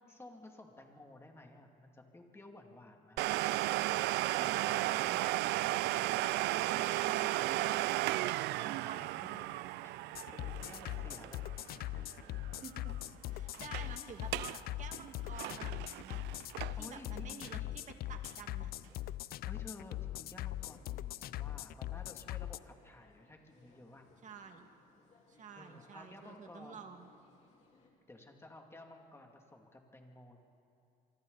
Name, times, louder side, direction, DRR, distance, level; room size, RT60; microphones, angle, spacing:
voice 1, 0.0-3.3 3.7-4.8 5.8-6.1 8.9-12.0 16.3-16.5 16.8-17.8 18.9-19.2 19.5-24.1 25.5-26.9 28.1-30.4, left 2 dB, 15° left, 2 dB, 2.4 m, -54 dB
Domestic sounds home sounds, 3.2-12.6 12.9-13.0 13.5-13.9 14.2-14.6 14.9-17.0 17.5-17.6 18.2-18.3, right 17 dB, 85° right, 0.4 m, -34 dB
voice 2, 4.1-5.3 5.6-6.1 6.7-7.9 8.6-9.3 12.5-13.0 13.2-16.2 16.8-18.7 24.2-24.7 25.3-27.1, right 6 dB, 45° right, 5 dB, 1.9 m, -50 dB
sound 1, 10.1-22.6, left 15 dB, 65° left, 0.5 m, -41 dB
sound 2, 11.1-27.9, left 3 dB, 45° left, 4.0 m, -67 dB
26.5 x 24.0 x 4.0 m, 2.6 s
cardioid pair, 110°, 17 cm